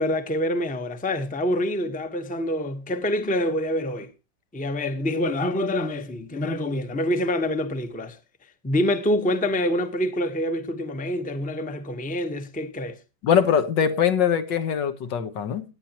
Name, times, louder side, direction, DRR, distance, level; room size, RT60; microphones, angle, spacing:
voice 1, 0.0-4.1 4.5-8.2 8.6-13.0, left 1 dB, 5° left, 0.7 m, -26 dB
voice 2, 13.2-15.6, left 8 dB, 85° left, 1.8 m, -22 dB
18.0 x 9.0 x 2.9 m
omnidirectional pair, 1.9 m